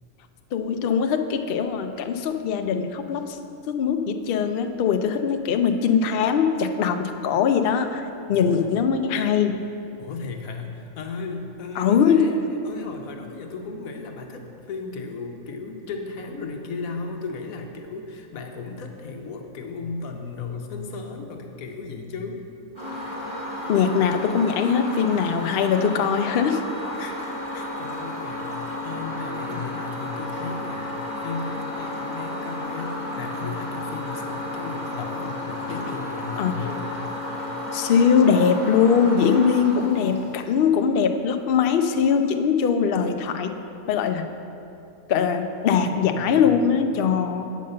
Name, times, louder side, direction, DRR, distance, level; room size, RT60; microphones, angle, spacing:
voice 1, 0.5-3.4 3.7-8.0 8.3-9.6 11.8-12.2 23.7-26.6 36.4-36.5 37.7-43.5 43.9-44.3 45.1-47.4, left 7 dB, 60° left, 6 dB, 0.6 m, -21 dB
voice 2, 8.3-8.7 10.0-12.4 12.6-22.4 27.0-27.3 27.5-30.9 31.1-36.9 45.8-46.4, left 4 dB, 90° left, 3 dB, 1.2 m, -35 dB
sound 1, 22.8-40.7, left 1 dB, 20° right, 2.5 m, -32 dB
8.6 x 5.3 x 6.6 m, 2.6 s
omnidirectional pair, 1.4 m